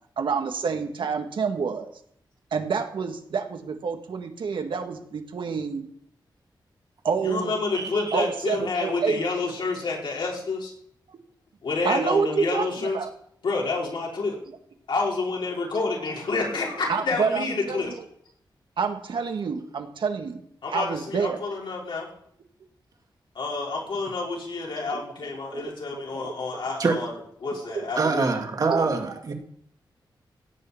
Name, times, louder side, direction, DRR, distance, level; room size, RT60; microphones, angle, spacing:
voice 1, 0.2-1.9 2.5-5.9 7.0-7.5 8.1-9.2 11.8-13.1 15.8-15.9 16.9-18.0 18.8-20.4 20.7-21.4 24.9-25.0 25.5-26.3 27.7-27.9 28.1-28.2 28.7-28.9, right 5 dB, 75° right, 5 dB, 1.8 m, -28 dB
voice 2, 7.2-10.7 11.6-13.0 13.4-14.4 14.9-17.9 20.6-22.1 23.4-27.1 27.4-28.3, left 3 dB, 70° left, -3 dB, 5.2 m, -29 dB
voice 3, 7.7-8.2 26.8-27.0 28.0-29.3, right 4 dB, 50° right, 3 dB, 2.2 m, -25 dB
17.0 x 6.7 x 8.6 m, 0.68 s
wide cardioid pair, 145°, 8 cm